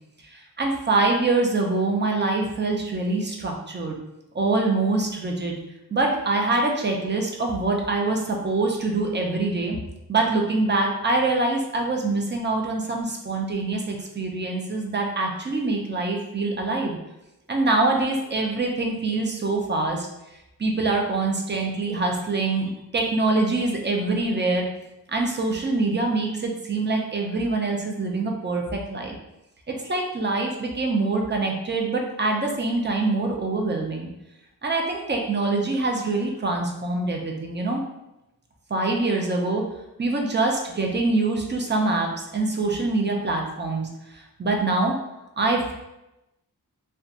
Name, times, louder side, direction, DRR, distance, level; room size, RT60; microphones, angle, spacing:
voice 1, 0.3-4.0 4.3-5.5 5.9-9.8 10.1-17.0 17.5-20.1 20.6-24.7 25.1-29.1 29.7-34.1 34.6-37.8 38.7-39.6 40.0-45.0 45.4-45.7, right 3 dB, 30° right, 1 dB, 0.5 m, -24 dB
2.8 x 2.2 x 2.4 m, 0.92 s
wide cardioid pair, 65°, 37 cm